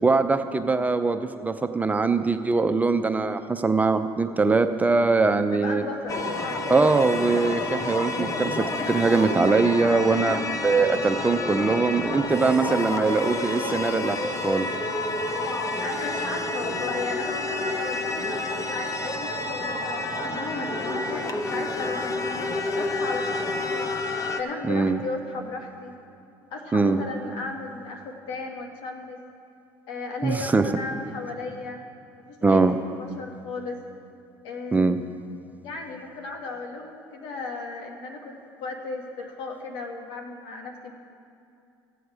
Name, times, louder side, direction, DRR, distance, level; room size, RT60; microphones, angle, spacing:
voice 1, 0.0-5.8 6.7-10.4 10.6-14.2 14.4-14.7 24.7-25.0 26.7-27.0 30.2-30.6 32.4-32.7 34.7-35.0, right 3 dB, 15° right, 8 dB, 0.6 m, -22 dB
voice 2, 5.5-6.2 10.1-10.6 12.6-13.0 15.8-22.3 22.8-23.9 24.4-26.0 26.5-29.2 29.9-31.8 32.3-32.7 33.2-33.8 34.4-35.1 35.6-40.9, left 3 dB, 70° left, 1 dB, 1.7 m, -35 dB
sound 1, 6.1-24.4, left 2 dB, 35° left, 1.0 m, -29 dB
15.0 x 7.9 x 4.9 m, 2.6 s
supercardioid pair, 90°, 9 cm